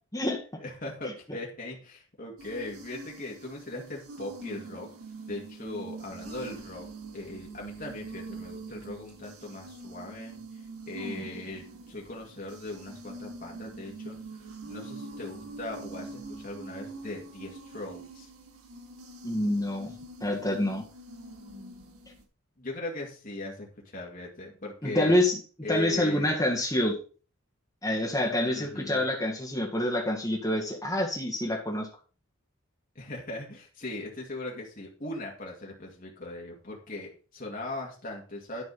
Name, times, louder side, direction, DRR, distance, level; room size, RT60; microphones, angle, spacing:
voice 1, 0.6-4.9 5.3-6.9 7.1-18.3 22.6-25.2 25.6-26.4 28.2-29.0 33.0-38.6, left 2 dB, 40° left, -2 dB, 2.2 m, -39 dB
sound 1, 2.4-22.2, right 3 dB, 85° right, 2.8 m, -44 dB
voice 2, 19.2-19.9 20.2-20.8 24.8-25.4 25.7-27.0 27.8-31.9, left 1 dB, 15° left, -1 dB, 1.9 m, -27 dB
11.5 x 5.2 x 5.5 m, 0.37 s
head